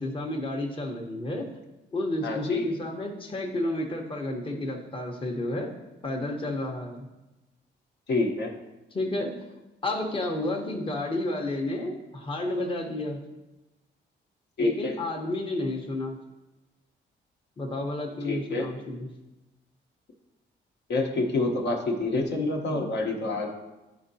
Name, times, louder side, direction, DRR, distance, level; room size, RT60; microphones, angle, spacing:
voice 1, 0.0-1.5 1.9-5.7 6.0-7.1 8.9-9.3 9.8-13.2 14.6-16.2 17.6-19.1, left 1 dB, 25° left, 1 dB, 0.9 m, -31 dB
voice 2, 2.2-2.6 8.1-8.5 14.6-14.9 18.2-18.7 20.9-23.5, left 2 dB, 60° left, 1 dB, 1.0 m, -27 dB
10.0 x 3.7 x 2.7 m, 1.0 s
cardioid pair, 90°, 20 cm